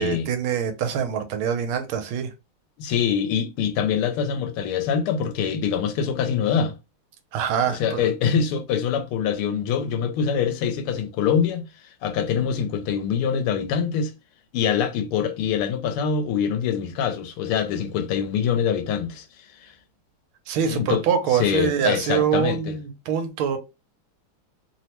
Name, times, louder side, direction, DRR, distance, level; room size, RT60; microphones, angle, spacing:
voice 1, 0.0-2.3 7.3-8.1 20.5-23.6, right 8 dB, 80° right, 1.5 m, -24 dB
voice 2, 2.8-6.7 7.7-11.6 12.0-14.1 14.5-19.3 19.6-19.7 20.7-21.0 21.3-22.8, left 7 dB, 90° left, 1.5 m, -24 dB
3.6 x 2.1 x 2.8 m
omnidirectional pair, 2.3 m